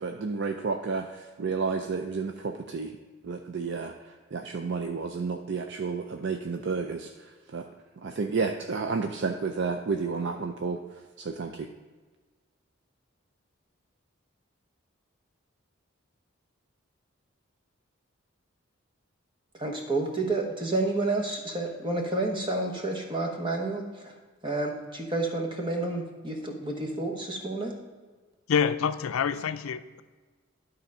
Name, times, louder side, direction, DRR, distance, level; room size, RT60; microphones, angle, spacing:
voice 1, 0.0-3.0 3.2-7.7 8.0-10.8 11.2-11.7, right 4 dB, 55° right, 5 dB, 0.4 m, -31 dB
voice 2, 19.6-24.1 24.4-27.7, right 2 dB, 25° right, 1 dB, 1.1 m, -30 dB
voice 3, 28.5-30.0, left 7 dB, 80° left, 11 dB, 0.4 m, -27 dB
12.0 x 4.0 x 5.4 m, 1.4 s
head